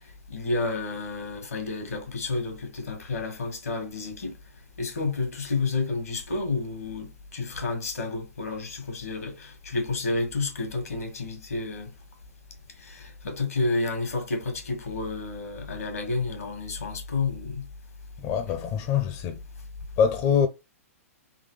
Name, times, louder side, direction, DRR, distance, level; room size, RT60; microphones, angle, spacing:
voice 1, 0.3-4.3 4.8-11.9 12.8-17.6, left 3 dB, 80° left, 1.7 m, -30 dB
voice 2, 18.2-19.4 20.0-20.5, left 7 dB, 35° left, 0.5 m, -24 dB
3.8 x 3.1 x 3.2 m
hypercardioid pair, 115°, 8 cm